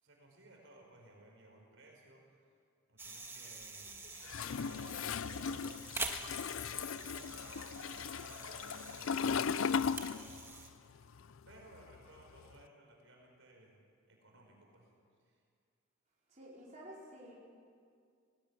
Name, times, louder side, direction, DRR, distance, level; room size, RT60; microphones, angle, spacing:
voice 1, 0.0-2.2 2.9-4.0 4.4-11.1 11.4-14.9 15.2-15.4, right 1 dB, 65° right, 0 dB, 5.0 m, -60 dB
sound 1, 3.0-10.7, right 3 dB, 10° right, 1.4 m, -46 dB
Laughter, 3.9-9.3, left 1 dB, 45° left, 3.2 m, -60 dB
Toilet flush, 4.2-10.7 10.9-12.5, left 6 dB, 75° left, 0.5 m, -37 dB
voice 2, 16.3-17.3, right 1 dB, 35° right, -6 dB, 4.7 m, -51 dB
19.0 x 18.5 x 9.4 m, 2.2 s
head